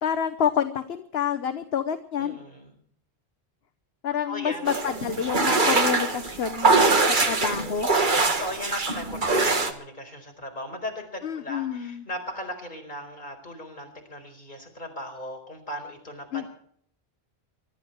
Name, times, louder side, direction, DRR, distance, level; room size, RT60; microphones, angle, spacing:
voice 1, 0.0-2.4 4.0-7.0 7.2-7.9 11.2-12.0 16.3-16.5, left 8 dB, 65° left, 10 dB, 1.2 m, -28 dB
voice 2, 2.2-2.8 4.2-4.8 7.2-7.8 8.3-16.5, left 1 dB, 40° left, 2 dB, 4.8 m, -38 dB
sound 1, 4.6-9.7, right 3 dB, 45° right, 1.6 m, -23 dB
24.0 x 12.5 x 4.6 m, 0.62 s
omnidirectional pair, 1.1 m